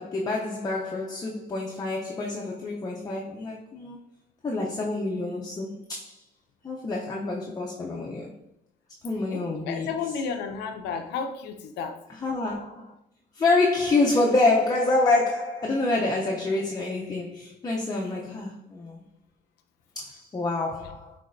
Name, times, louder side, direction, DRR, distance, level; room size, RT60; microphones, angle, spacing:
voice 1, 0.0-4.0 4.4-6.2 6.6-8.3 9.0-9.9 12.1-12.9 13.3-19.1 20.0-21.1, left 2 dB, 20° left, 0.6 m, -27 dB
voice 2, 9.3-12.0, left 5 dB, 85° left, 0.6 m, -32 dB
5.9 x 3.3 x 2.6 m
cardioid pair, 110°, 17 cm